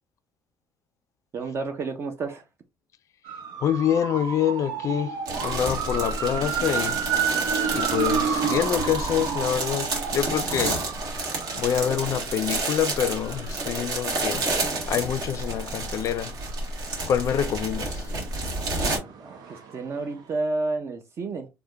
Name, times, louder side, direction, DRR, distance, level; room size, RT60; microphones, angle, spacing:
voice 1, 1.3-2.4 19.2-21.5, right 3 dB, 40° right, 0.5 m, -30 dB
sound 1, 3.3-17.0 17.4-20.0 20.2-20.3, right 7 dB, 85° right, 0.8 m, -32 dB
voice 2, 3.6-7.0 7.7-10.8 11.6-14.5 14.9-16.4 17.1-18.1, left 9 dB, 45° left, 0.4 m, -26 dB
sound 2, 5.3-19.0, right 2 dB, 60° right, 1.5 m, -30 dB
3.3 x 2.1 x 3.3 m
cardioid pair, 135°, 7 cm